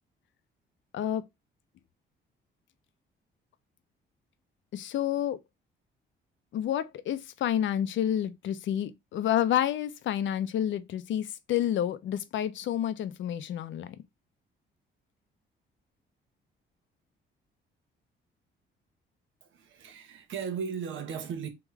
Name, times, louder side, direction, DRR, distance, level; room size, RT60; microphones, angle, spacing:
voice 1, 0.9-1.2 4.7-5.4 6.5-14.0, left 10 dB, 70° left, 0.6 m, -29 dB
voice 2, 19.4-21.5, right 6 dB, 75° right, 1.2 m, -36 dB
3.6 x 3.1 x 4.6 m
cardioid pair, 90°, 20 cm